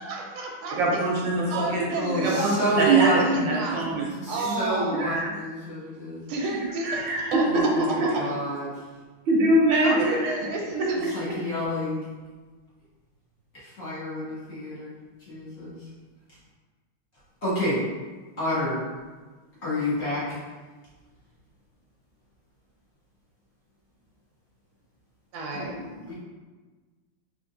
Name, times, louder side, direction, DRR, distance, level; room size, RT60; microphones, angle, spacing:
voice 1, 0.0-1.0 1.5-3.8 4.3-5.1 6.3-7.4 8.0-8.1 9.8-11.0 25.3-25.8, right 2 dB, 85° right, 0 dB, 1.5 m, -31 dB
voice 2, 0.8-1.8 2.1-4.6 5.0-5.3 6.4-6.5 6.8-7.3 9.3-10.3, right 2 dB, 70° right, -3 dB, 1.3 m, -23 dB
voice 3, 1.9-3.2 4.2-6.2 7.4-8.8 11.1-12.0 13.5-14.9 15.3-15.9 17.4-17.9 18.4-18.8 19.6-20.4 25.5-26.1, equal, 45° left, -11 dB, 1.3 m, -29 dB
3.7 x 3.1 x 2.6 m, 1.4 s
omnidirectional pair, 2.3 m